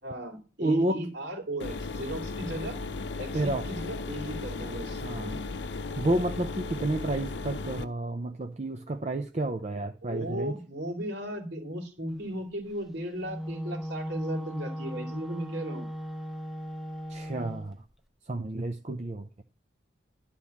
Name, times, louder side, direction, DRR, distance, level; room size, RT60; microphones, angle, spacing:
voice 1, 0.0-2.8 3.2-5.4 10.0-15.9, right 1 dB, 65° right, 3.0 m, -36 dB
voice 2, 0.6-1.0 3.3-3.6 5.0-5.4 6.0-10.6 17.1-17.8 18.3-19.3, right 1 dB, 35° right, 0.6 m, -30 dB
sound 1, 1.6-7.8, left 3 dB, 65° left, 0.7 m, -36 dB
Wind instrument woodwind instrument, 13.2-17.7, equal, ahead, 0.7 m, -37 dB
11.5 x 4.3 x 7.2 m
head